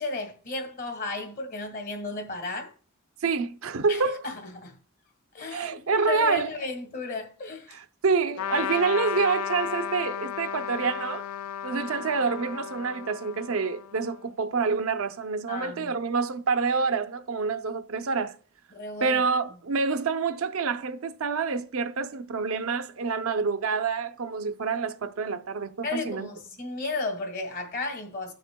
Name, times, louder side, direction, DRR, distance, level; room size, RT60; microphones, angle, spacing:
voice 1, 0.0-2.7 3.9-4.8 5.3-7.8 15.5-16.0 18.7-19.2 25.8-28.3, left 3 dB, 45° left, 1.7 m, -34 dB
voice 2, 3.2-4.3 5.5-6.5 7.7-11.2 11.6-18.4 19.0-26.3, right 5 dB, 75° right, 0.6 m, -27 dB
Trumpet, 8.4-14.2, left 9 dB, 80° left, 0.3 m, -34 dB
16.0 x 6.4 x 2.2 m
head